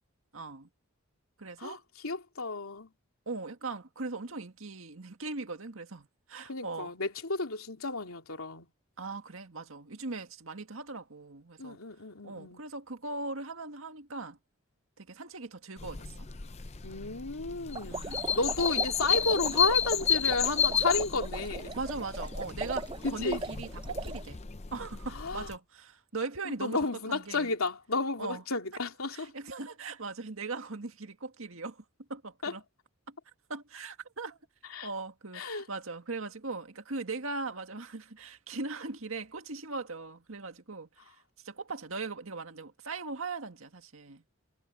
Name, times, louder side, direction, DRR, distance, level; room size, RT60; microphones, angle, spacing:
voice 1, 0.3-0.7 1.4-1.8 3.3-6.9 9.0-11.8 12.2-14.4 15.0-16.3 17.9-18.2 21.7-24.4 24.7-27.5 28.2-28.4 29.1-31.8 32.1-32.6 33.1-33.2 33.5-34.4 34.8-41.2 41.4-44.2, right 3 dB, 75° right, 1.9 m, -39 dB
voice 2, 1.6-2.9 6.4-8.7 11.6-12.6 16.8-21.8 23.0-23.5 25.1-25.5 26.4-29.3 32.4-32.5 34.7-34.9 35.3-35.7, left 3 dB, 85° left, 3.0 m, -32 dB
sound 1, 15.8-25.5, left 7 dB, 30° left, 0.6 m, -32 dB
sound 2, 17.7-24.2, right 3 dB, 25° right, 0.6 m, -39 dB
head